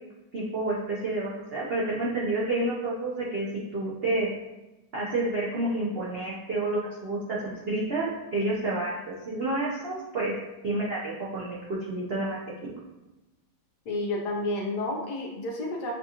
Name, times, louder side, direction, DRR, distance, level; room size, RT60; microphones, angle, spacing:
voice 1, 0.3-3.5 3.7-4.3 4.9-9.0 9.3-10.3 10.6-12.7, right 2 dB, 85° right, -6 dB, 0.5 m, -29 dB
voice 2, 13.9-15.9, left 2 dB, 65° left, 0 dB, 1.2 m, -30 dB
6.2 x 2.4 x 2.8 m, 1.0 s
omnidirectional pair, 2.1 m